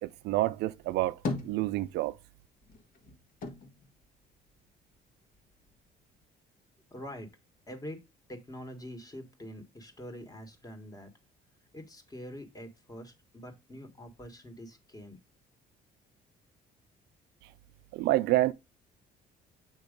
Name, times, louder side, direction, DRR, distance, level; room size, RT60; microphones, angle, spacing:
voice 1, 0.0-1.2 1.4-2.1 17.9-18.5, right 17 dB, 80° right, 0.5 m, -28 dB
sound 1, 0.8-2.3 2.6-5.0 5.3-6.2, left 3 dB, 55° left, 1.5 m, -39 dB
voice 2, 6.9-7.3 7.7-8.0 8.3-11.1 11.7-15.2, equal, 20° left, 1.7 m, -45 dB
7.3 x 3.0 x 5.2 m
cardioid pair, 110°, 17 cm